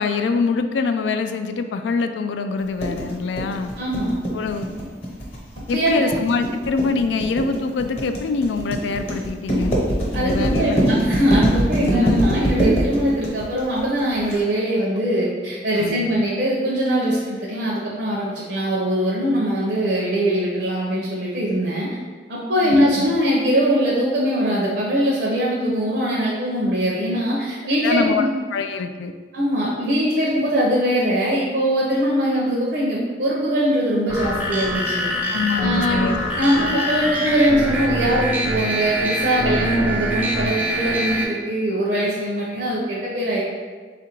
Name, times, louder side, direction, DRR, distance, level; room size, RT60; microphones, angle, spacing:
voice 1, 0.0-3.7 4.3-4.7 5.7-9.7 10.1-10.8 12.0-12.2 15.8-16.1 22.6-23.1 27.8-28.2 28.5-29.1 35.3-36.2, left 4 dB, 85° left, 8 dB, 0.3 m, -24 dB
sound 1, 2.8-14.4, equal, 40° left, 0.9 m, -22 dB
voice 2, 3.8-4.1 5.7-6.1 10.1-21.9 22.3-28.3 29.3-35.1 35.5-36.0 36.4-43.4, equal, 65° right, -6 dB, 0.6 m, -21 dB
sound 2, 34.1-41.2, equal, 10° right, 0.4 m, -24 dB
3.7 x 2.5 x 4.4 m, 1.5 s
head